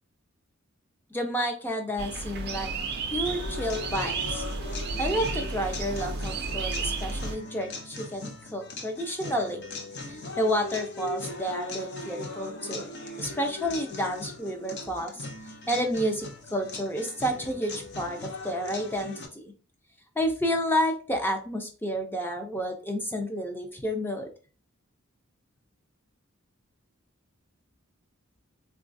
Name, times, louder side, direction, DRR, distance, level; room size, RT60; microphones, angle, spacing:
voice 1, 1.1-2.7 3.1-4.4 5.0-9.6 10.1-12.9 13.2-15.3 15.7-19.5 20.2-24.3, equal, 10° left, 3 dB, 0.5 m, -30 dB
sound 1, 2.0-7.4, right 3 dB, 50° right, 0.4 m, -32 dB
sound 2, 3.3-19.3, left 2 dB, 55° left, 0.6 m, -39 dB
3.9 x 2.4 x 2.5 m, 0.36 s
head